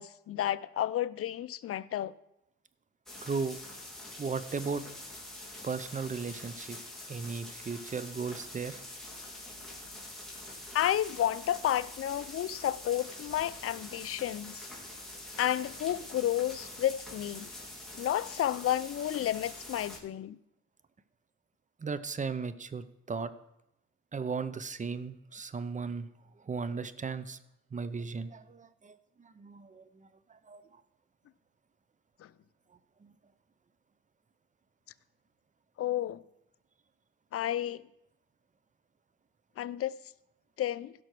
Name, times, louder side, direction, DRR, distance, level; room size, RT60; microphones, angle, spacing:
voice 1, 0.0-2.1 10.7-14.6 15.4-17.5 18.0-20.4 35.8-36.2 37.3-37.8 39.6-40.0 40.6-40.9, left 12 dB, 50° left, 0.5 m, -31 dB
sound 1, 3.1-20.0, left 1 dB, ahead, 3.1 m, -45 dB
voice 2, 3.2-3.6 4.2-4.8 5.6-6.8 7.1-8.9 21.8-23.3 24.1-26.1 26.4-27.4 27.7-30.8 33.0-33.2, right 5 dB, 25° right, 0.7 m, -36 dB
16.5 x 6.0 x 4.6 m
cardioid pair, 90°, 30 cm